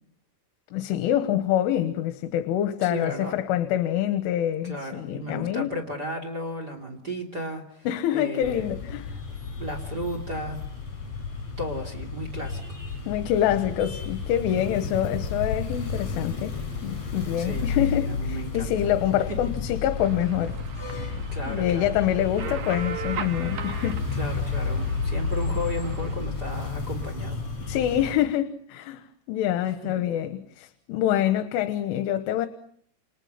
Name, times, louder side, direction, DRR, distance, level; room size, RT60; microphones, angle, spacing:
voice 1, 0.7-5.8 7.9-9.1 13.1-20.6 20.9-21.2 21.5-24.0 27.7-32.5, left 11 dB, 80° left, 3.6 m, -26 dB
voice 2, 2.8-3.4 4.6-8.7 9.1-9.2 9.6-10.6 11.6-12.8 14.5-15.0 17.4-18.7 21.3-21.9 22.4-22.6 24.1-27.4 29.6-30.0, equal, 25° right, 2.8 m, -35 dB
sound 1, 8.4-28.2, left 5 dB, 35° left, 7.1 m, -32 dB
sound 2, 20.0-26.1, right 4 dB, 55° right, 2.2 m, -37 dB
29.5 x 29.0 x 5.8 m
omnidirectional pair, 5.8 m